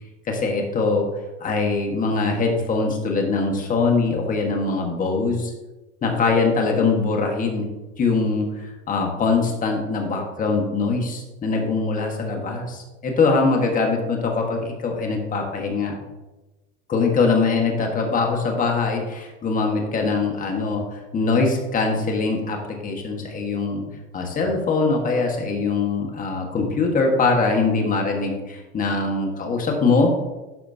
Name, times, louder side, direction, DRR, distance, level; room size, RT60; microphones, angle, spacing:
voice 1, 0.3-1.1 1.4-5.5 6.0-7.7 8.0-16.0 16.9-22.6 22.8-23.8 24.1-30.1, left 4 dB, 25° left, 1 dB, 1.5 m, -22 dB
12.0 x 5.0 x 2.8 m, 1.1 s
supercardioid pair, 135°, 30 cm